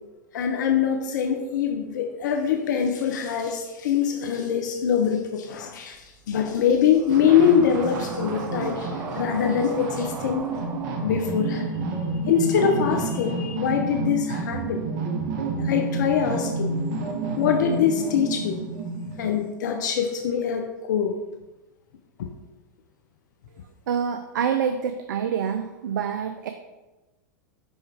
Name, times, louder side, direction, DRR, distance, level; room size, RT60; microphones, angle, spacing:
voice 1, 0.3-10.4 11.0-11.7 12.3-14.8 15.6-16.7 17.4-18.6 19.2-21.1 22.2-22.3, left 8 dB, 70° left, 5 dB, 0.6 m, -23 dB
sound 1, 5.9-12.1, right 4 dB, 25° right, 0.7 m, -41 dB
sound 2, 7.1-19.4, right 3 dB, 55° right, 1.1 m, -29 dB
voice 2, 23.9-26.5, right 7 dB, 75° right, 7 dB, 0.4 m, -26 dB
5.7 x 5.4 x 3.4 m, 1.1 s
hypercardioid pair, 105°, 10 cm